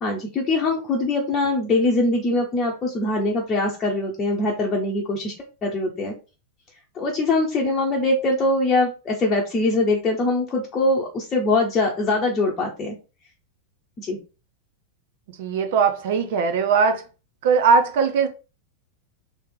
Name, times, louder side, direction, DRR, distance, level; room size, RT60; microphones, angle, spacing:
voice 1, 0.0-5.3 5.6-6.1 6.9-13.0 14.0-14.2, left 2 dB, 25° left, 1.0 m, -22 dB
voice 2, 15.4-17.0 17.4-18.3, right 5 dB, 55° right, 0.9 m, -19 dB
3.4 x 3.1 x 4.7 m
figure-of-eight pair, 90°, 0 cm